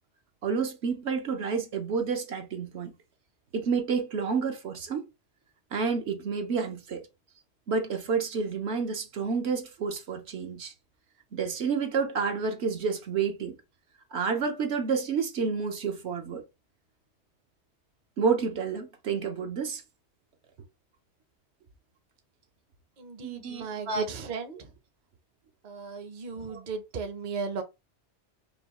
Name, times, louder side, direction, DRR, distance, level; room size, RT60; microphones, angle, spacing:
voice 1, 0.4-2.9 3.5-5.1 5.7-7.1 7.7-10.7 11.3-13.6 14.1-16.4 18.2-19.8 23.2-24.0 26.5-26.6, right 5 dB, 70° right, 1.1 m, -29 dB
voice 2, 23.0-24.7 25.6-27.6, right 5 dB, 45° right, 0.8 m, -36 dB
5.4 x 2.3 x 2.9 m
omnidirectional pair, 1.2 m